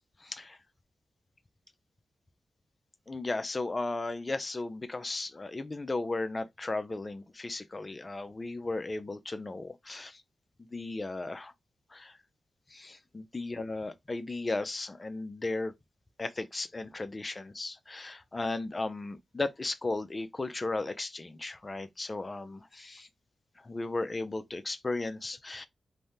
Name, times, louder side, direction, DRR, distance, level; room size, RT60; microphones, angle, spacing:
voice 1, 0.2-0.6 3.1-10.2 10.7-11.5 11.9-12.2 12.7-15.7 16.2-23.1 23.6-25.7, left 2 dB, 35° left, 0.4 m, -35 dB
3.3 x 2.1 x 2.6 m
cardioid pair, 55°, 0 cm